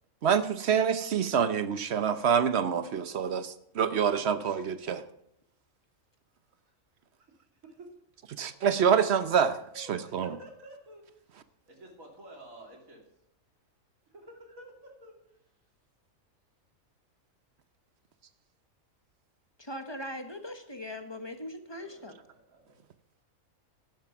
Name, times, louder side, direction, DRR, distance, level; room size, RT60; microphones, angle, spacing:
voice 1, 0.2-5.0 8.4-10.4, right 7 dB, 55° right, 0.9 m, -26 dB
voice 2, 9.7-11.2 11.7-13.0 14.1-15.1 21.8-22.8, right 1 dB, 80° right, 3.1 m, -51 dB
voice 3, 19.6-22.2, left 1 dB, 20° left, 1.0 m, -40 dB
11.5 x 9.5 x 5.9 m
omnidirectional pair, 1.4 m